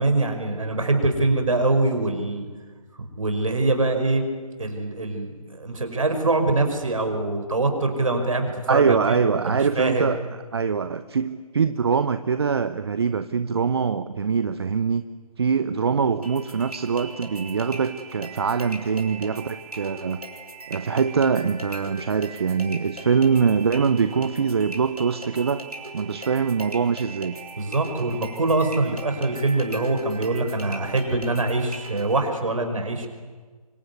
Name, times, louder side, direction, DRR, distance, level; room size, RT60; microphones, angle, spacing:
voice 1, 0.0-2.5 3.0-4.3 4.6-10.1 27.6-33.1, right 2 dB, 60° right, 6 dB, 5.5 m, -24 dB
voice 2, 8.7-10.2 10.5-15.0 15.4-20.2 20.7-25.6 25.9-27.4, right 6 dB, 45° right, 11 dB, 0.9 m, -23 dB
sound 1, 16.2-32.2, right 2 dB, 85° right, 5.3 m, -40 dB
26.0 x 23.5 x 9.7 m, 1.5 s
figure-of-eight pair, 145°, 19 cm